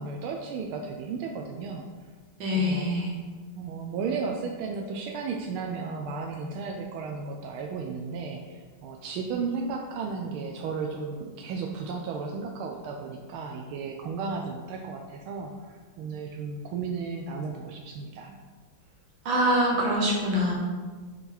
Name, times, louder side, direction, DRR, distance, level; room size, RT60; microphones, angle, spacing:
voice 1, 0.0-1.9 2.5-2.9 3.6-18.4, right 4 dB, 90° right, 2 dB, 1.5 m, -34 dB
voice 2, 2.4-3.1 19.3-20.5, equal, 70° right, -3 dB, 2.3 m, -24 dB
9.1 x 4.1 x 4.2 m, 1.5 s
omnidirectional pair, 2.2 m